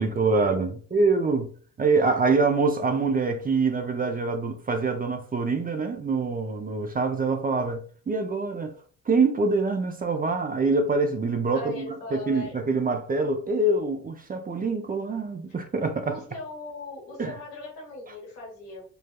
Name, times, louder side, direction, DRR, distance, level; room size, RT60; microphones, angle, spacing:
voice 1, 0.0-1.5 1.8-8.7 9.1-16.2 17.2-17.4, right 3 dB, 25° right, 0.5 m, -25 dB
voice 2, 11.5-12.6 16.0-18.8, left 2 dB, 90° left, 1.2 m, -39 dB
3.2 x 2.2 x 2.2 m
hypercardioid pair, 50°, 35 cm